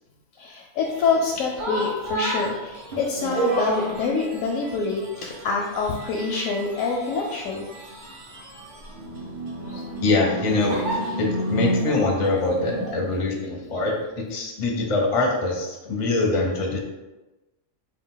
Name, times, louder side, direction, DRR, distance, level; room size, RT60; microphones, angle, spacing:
voice 1, 0.4-7.6 9.7-9.8, left 4 dB, 85° left, -1 dB, 1.0 m, -26 dB
sound 1, 0.8-12.9, right 1 dB, 40° right, 0.8 m, -31 dB
voice 2, 10.0-16.8, left 2 dB, 40° left, 0 dB, 0.5 m, -24 dB
4.1 x 2.4 x 3.8 m, 1.1 s
omnidirectional pair, 1.4 m